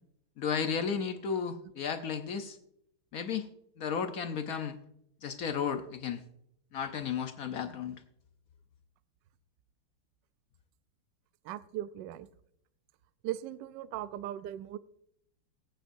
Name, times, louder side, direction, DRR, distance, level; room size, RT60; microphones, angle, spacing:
voice 1, 0.4-2.6 3.1-3.5 3.8-4.8 5.2-6.2 6.7-8.0, left 6 dB, 65° left, 8 dB, 0.9 m, -33 dB
voice 2, 11.5-12.3 13.2-14.8, right 12 dB, 70° right, 13 dB, 1.1 m, -38 dB
20.5 x 9.1 x 2.6 m, 0.73 s
omnidirectional pair, 2.4 m